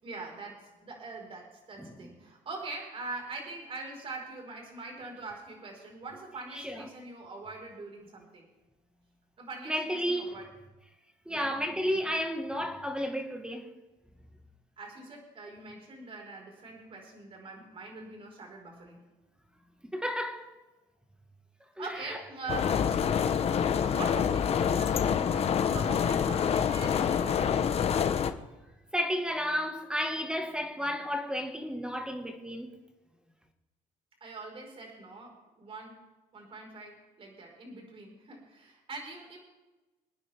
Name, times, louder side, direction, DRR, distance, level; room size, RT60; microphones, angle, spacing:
voice 1, 0.0-8.5 9.4-10.5 11.3-11.5 14.8-19.0 21.8-27.5 34.2-36.0 36.3-39.4, right 3 dB, 40° right, 5.0 m, -43 dB
voice 2, 9.7-10.3 11.2-13.8 19.9-20.5 21.8-22.2 28.9-32.8, equal, 5° right, 1.7 m, -32 dB
sound 1, 22.5-28.3, left 7 dB, 45° left, 1.1 m, -27 dB
25.5 x 9.7 x 3.6 m
cardioid pair, 110°, 15 cm